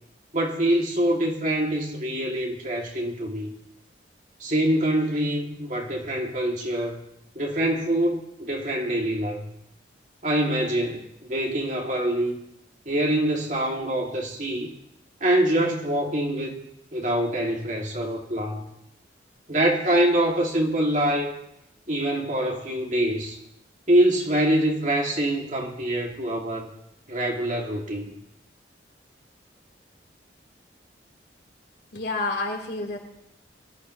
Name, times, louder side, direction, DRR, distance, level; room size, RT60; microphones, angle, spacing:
voice 1, 0.3-3.5 4.4-7.0 7.4-9.4 10.2-12.4 12.9-14.7 15.2-16.6 16.9-18.6 19.5-21.3 21.9-23.4 23.9-26.7 27.1-28.2, right 1 dB, 45° right, -1 dB, 2.6 m, -25 dB
voice 2, 31.9-33.0, left 2 dB, 65° left, -1 dB, 3.8 m, -29 dB
23.0 x 14.5 x 3.2 m, 0.79 s
head